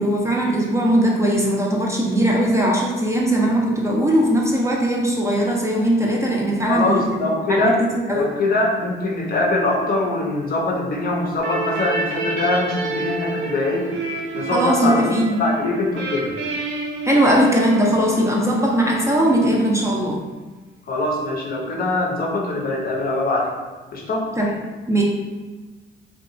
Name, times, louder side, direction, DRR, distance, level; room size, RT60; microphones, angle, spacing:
voice 1, 0.0-8.3 14.5-15.4 17.0-20.2 24.4-24.5 24.9-25.0, right 1 dB, 15° right, -2 dB, 0.4 m, -19 dB
voice 2, 6.6-7.9 8.1-13.9 14.3-16.3 20.9-23.5 23.9-24.3, left 2 dB, 50° left, 0 dB, 0.6 m, -22 dB
sound 1, 11.4-19.9, right 3 dB, 75° right, 0.6 m, -29 dB
2.8 x 2.3 x 2.5 m, 1.2 s
cardioid pair, 90°, 20 cm